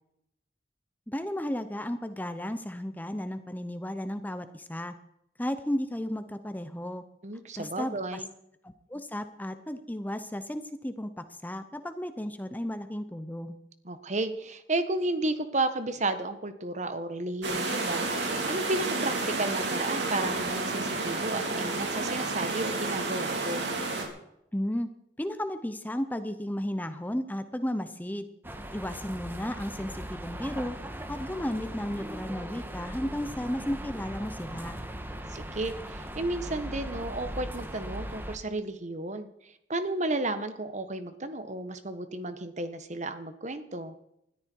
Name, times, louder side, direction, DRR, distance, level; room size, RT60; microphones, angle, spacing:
voice 1, 1.1-4.9 5.4-7.0 7.6-8.2 8.6-13.5 24.5-24.9 25.2-28.3 28.7-30.8 31.1-34.8, left 1 dB, 10° left, 10 dB, 0.8 m, -34 dB
voice 2, 7.2-8.3 13.8-18.0 18.5-19.1 19.4-23.6 35.3-43.9, right 2 dB, 40° right, 10 dB, 1.5 m, -33 dB
sound 1, 17.4-24.1, right 3 dB, 85° right, 3.9 m, -31 dB
sound 2, 28.4-38.4, right 1 dB, 10° right, 1.5 m, -39 dB
20.5 x 13.5 x 4.7 m, 0.79 s
head